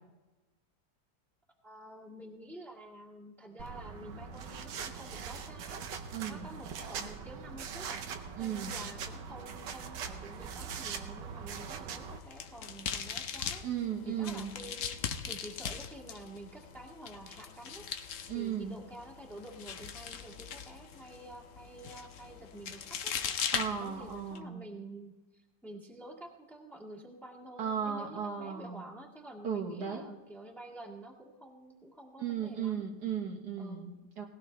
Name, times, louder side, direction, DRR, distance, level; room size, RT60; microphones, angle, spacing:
voice 1, 1.6-5.8 6.3-8.0 8.4-13.6 14.0-14.9 15.3-17.9 18.3-23.2 23.7-32.9 33.6-33.8, right 1 dB, ahead, -3 dB, 1.6 m, -49 dB
sound 1, 3.6-12.2, right 6 dB, 85° right, 1.6 m, -42 dB
voice 2, 6.1-6.5 8.4-8.8 13.6-14.5 18.3-18.8 23.5-24.7 27.6-28.8 29.4-30.1 32.2-34.3, right 8 dB, 65° right, 2 dB, 1.8 m, -36 dB
sound 2, 12.0-24.4, left 7 dB, 55° left, 1.0 m, -40 dB
18.0 x 16.5 x 3.3 m, 1.2 s
omnidirectional pair, 1.9 m